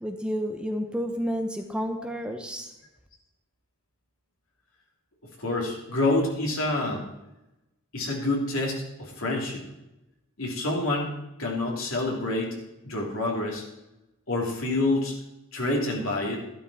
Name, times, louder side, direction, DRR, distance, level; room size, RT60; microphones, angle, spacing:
voice 1, 0.0-2.7, equal, 5° right, 4 dB, 0.8 m, -30 dB
voice 2, 5.4-7.0 7.9-9.6 10.4-11.1 11.4-12.6 12.8-13.6 14.3-15.1 15.5-16.4, left 2 dB, 80° left, -1 dB, 3.1 m, -27 dB
12.5 x 11.5 x 4.3 m, 0.95 s
head